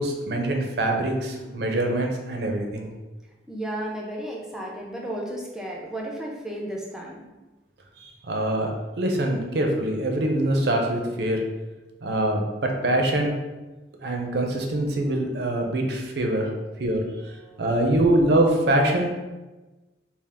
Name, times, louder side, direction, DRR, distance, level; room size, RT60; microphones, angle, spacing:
voice 1, 0.0-2.9 8.0-8.7 9.0-11.4 12.0-13.3 14.0-16.5 16.8-17.0 17.6-19.1, right 1 dB, 65° right, 2 dB, 0.6 m, -24 dB
voice 2, 3.5-7.2 16.6-17.8, right 1 dB, 5° right, -2 dB, 0.5 m, -34 dB
3.6 x 2.4 x 3.5 m, 1.2 s
head